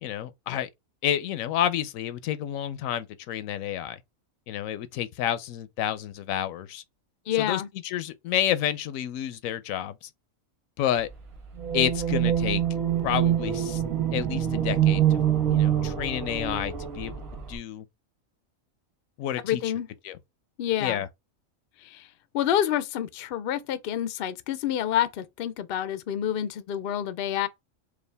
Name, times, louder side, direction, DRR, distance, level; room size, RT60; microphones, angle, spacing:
voice 1, 0.0-0.7 1.0-4.0 4.5-6.8 7.3-10.1 10.8-11.1 11.7-12.6 13.0-13.8 14.1-15.2 15.5-17.1 17.5-17.9 19.2-19.7 20.0-20.2 20.8-21.1, left 11 dB, 85° left, 1.0 m, -29 dB
voice 2, 7.3-7.7 19.4-19.9 20.6-21.0 21.8-22.1 22.3-27.5, left 10 dB, 60° left, 0.6 m, -28 dB
sound 1, 11.6-17.6, right 10 dB, 50° right, 1.6 m, -25 dB
4.9 x 2.4 x 3.3 m
omnidirectional pair, 1.4 m